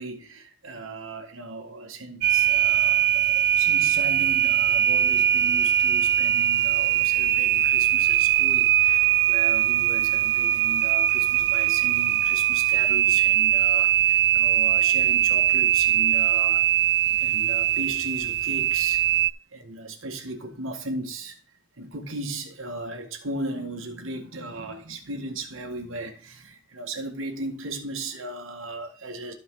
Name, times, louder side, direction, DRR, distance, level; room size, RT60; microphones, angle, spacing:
voice 1, 0.0-16.7 17.1-19.0 19.5-21.4 21.8-29.3, right 2 dB, 75° right, 1.9 m, -36 dB
sound 1, 2.2-19.3, right 12 dB, 50° right, 0.4 m, -21 dB
15.0 x 5.0 x 3.9 m
head